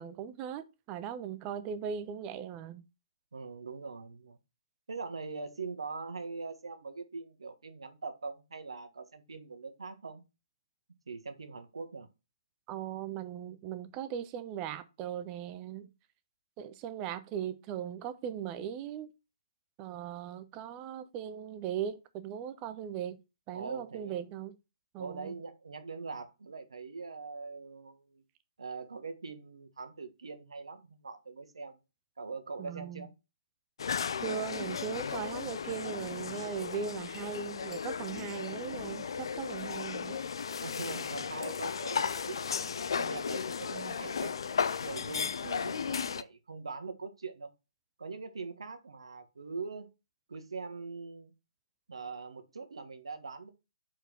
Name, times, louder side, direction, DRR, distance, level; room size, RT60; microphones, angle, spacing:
voice 1, 0.0-2.8 12.7-15.9 16.6-19.1 19.8-23.2 23.5-24.5 24.9-25.4 32.6-33.1 34.2-40.2 43.7-43.9, right 9 dB, 25° right, 0.7 m, -39 dB
voice 2, 3.3-4.4 4.9-10.2 11.1-12.1 23.5-24.2 25.0-28.2 28.6-31.8 32.2-33.1 40.6-44.3 44.8-47.5 48.0-49.9 50.3-51.3 51.9-53.5, right 4 dB, 70° right, 1.5 m, -42 dB
sound 1, 33.8-46.2, left 6 dB, 60° left, 0.5 m, -35 dB
4.9 x 4.6 x 6.1 m
figure-of-eight pair, 135°, 3 cm